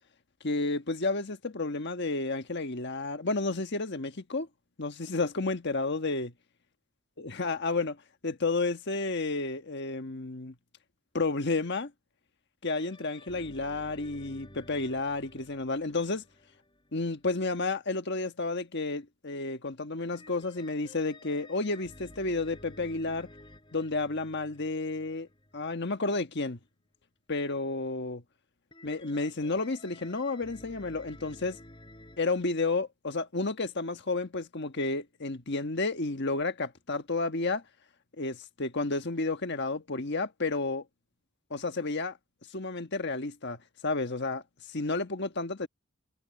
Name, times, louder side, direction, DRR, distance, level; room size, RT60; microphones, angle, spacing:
voice 1, 0.4-4.5 4.8-6.3 7.2-8.0 8.2-10.5 11.1-11.9 12.6-16.2 16.9-23.3 23.7-25.3 25.5-26.6 27.3-28.2 28.8-31.6 32.2-37.6 38.2-40.8 41.5-42.2 42.5-44.4 44.7-45.7, left 3 dB, 50° left, 1.4 m, -31 dB
sound 1, 12.7-17.7 20.1-26.2 28.7-32.4, left 1 dB, 20° left, 5.7 m, -53 dB
head